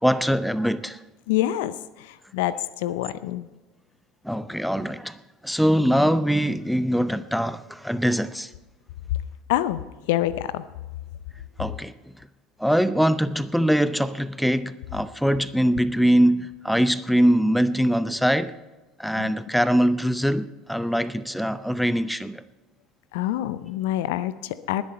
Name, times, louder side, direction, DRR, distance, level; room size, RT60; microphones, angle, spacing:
voice 1, 0.0-1.0 4.2-5.2 5.4-8.5 11.6-11.9 12.6-18.5 19.0-22.4, equal, ahead, 0.7 m, -22 dB
voice 2, 1.3-3.5 9.5-10.7 19.2-19.3 23.1-24.8, left 13 dB, 65° left, 0.6 m, -26 dB
20.0 x 10.5 x 4.3 m
figure-of-eight pair, 70°, 0 cm